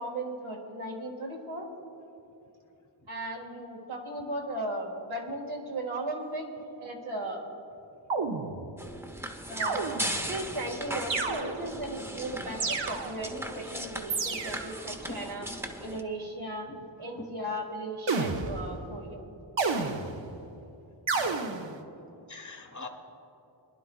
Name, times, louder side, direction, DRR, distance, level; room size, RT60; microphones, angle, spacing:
voice 1, 0.0-1.7 3.1-6.5 6.8-7.4 9.5-15.5 15.8-16.7 17.0-19.2 19.7-19.9, right 1 dB, 85° right, -1 dB, 1.9 m, -36 dB
sound 1, 8.1-8.9 9.6-10.3 11.1-11.9 12.6-13.4 14.1-14.8 18.1-18.8 19.6-20.4 21.1-21.8, right 4 dB, 65° right, 0.9 m, -31 dB
sound 2, 8.8-16.0, equal, 5° right, 0.8 m, -38 dB
voice 2, 21.1-21.4 22.3-22.9, left 3 dB, 35° left, 4 dB, 1.4 m, -43 dB
23.0 x 11.0 x 2.3 m, 2.9 s
wide cardioid pair, 70°, 47 cm